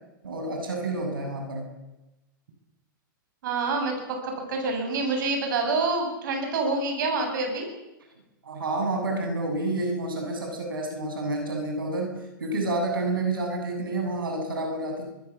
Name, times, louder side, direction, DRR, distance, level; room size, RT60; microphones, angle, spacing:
voice 1, 0.2-1.7 8.4-12.1 12.4-15.0, right 2 dB, 90° right, 3 dB, 7.5 m, -29 dB
voice 2, 3.4-7.7, right 3 dB, 65° right, 4 dB, 7.9 m, -27 dB
23.5 x 22.5 x 7.4 m, 1.0 s
hypercardioid pair, 120°, 11 cm